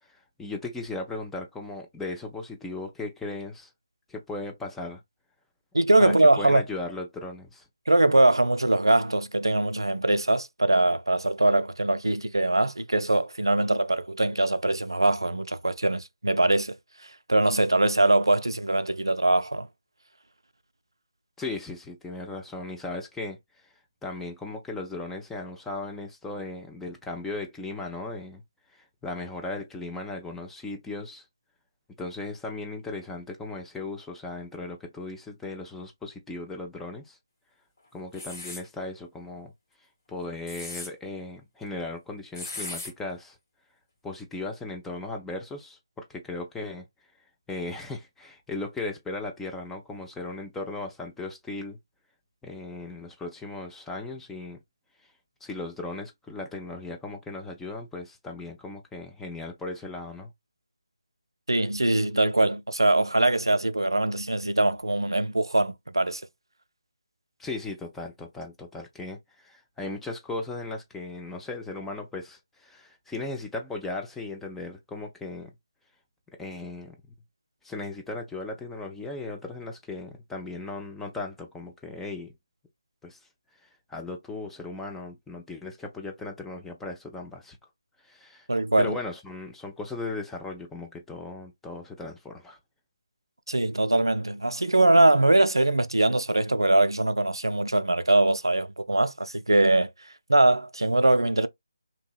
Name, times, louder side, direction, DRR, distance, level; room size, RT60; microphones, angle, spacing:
voice 1, 0.1-3.7 4.1-5.0 6.0-7.7 21.4-23.4 24.0-28.4 28.7-31.2 32.0-37.2 37.9-39.5 40.1-43.4 44.0-46.9 47.5-51.8 52.4-54.6 55.4-60.3 67.4-75.5 76.4-76.9 77.6-82.3 83.0-83.2 83.9-87.6 88.0-88.5 88.8-92.6, left 2 dB, 5° left, 0.4 m, -37 dB
voice 2, 5.7-6.6 7.9-16.8 17.3-19.7 61.5-66.2 88.5-89.0 93.5-99.9 100.3-101.5, right 2 dB, 80° right, 0.3 m, -22 dB
sound 1, 38.1-38.6 40.3-40.9 42.3-42.9, left 2 dB, 45° left, 1.4 m, -37 dB
2.8 x 2.7 x 2.3 m
figure-of-eight pair, 150°, 2 cm